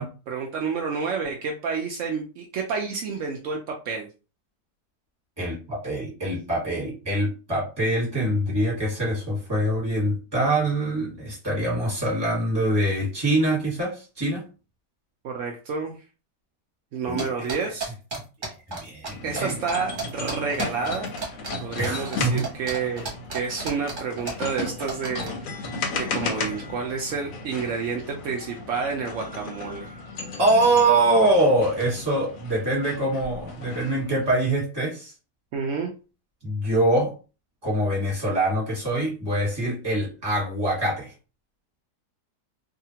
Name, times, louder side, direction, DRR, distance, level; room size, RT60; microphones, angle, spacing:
voice 1, 0.0-4.1 15.2-15.9 16.9-17.9 19.2-21.1 21.6-23.1 23.3-29.9 35.5-35.9, right 5 dB, 80° right, 0 dB, 0.6 m, -29 dB
voice 2, 5.4-14.4 17.1-17.3 18.7-19.6 21.8-22.5 30.4-35.1 36.4-37.1 37.6-41.1, right 1 dB, 15° right, -4 dB, 1.3 m, -24 dB
sound 1, 17.2-19.1 19.4-19.5 19.7-25.3, right 4 dB, 35° right, 1.0 m, -32 dB
sound 2, 19.1-34.4, left 3 dB, 65° left, 0.9 m, -35 dB
2.7 x 2.4 x 2.8 m, 0.33 s
omnidirectional pair, 1.9 m